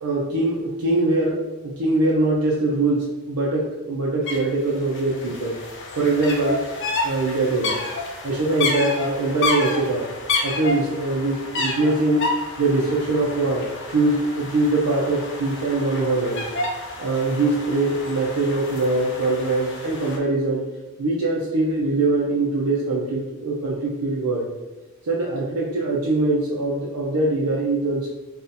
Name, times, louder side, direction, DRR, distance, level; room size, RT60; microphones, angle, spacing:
voice 1, 0.0-5.6 6.0-6.6 7.0-7.8 8.2-10.1 10.4-12.3 12.6-13.6 13.9-16.5 17.0-20.6 21.0-24.5 25.1-28.1, right 2 dB, 85° right, -3 dB, 0.5 m, -22 dB
sound 1, 4.3-4.4 4.6-20.2, left 3 dB, 55° left, 0.5 m, -30 dB
2.6 x 2.4 x 4.0 m, 1.1 s
head